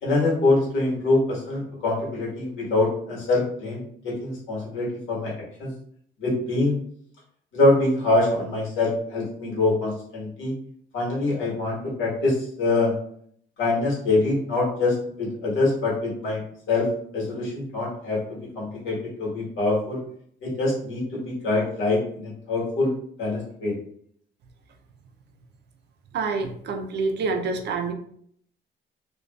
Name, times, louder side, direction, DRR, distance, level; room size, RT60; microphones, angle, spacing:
voice 1, 0.0-5.3 5.6-5.7 6.2-6.7 7.5-10.5 10.9-12.9 13.6-16.4 16.7-16.9 17.1-20.0 20.4-22.9 23.2-23.7, left 2 dB, 80° left, -6 dB, 1.3 m, -24 dB
voice 2, 26.1-27.9, right 4 dB, 60° right, 5 dB, 0.4 m, -27 dB
2.4 x 2.3 x 2.2 m, 0.64 s
cardioid pair, 90°, 20 cm